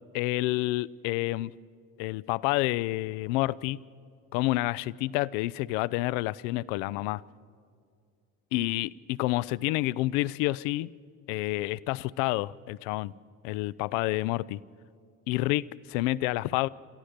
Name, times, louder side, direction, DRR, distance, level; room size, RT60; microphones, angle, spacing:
voice 1, 0.1-1.5 2.0-3.8 4.3-7.2 8.5-10.9 11.3-13.1 13.4-14.6 15.3-16.7, left 18 dB, 65° left, 0.6 m, -29 dB
28.5 x 14.0 x 6.7 m
hypercardioid pair, 55°, 44 cm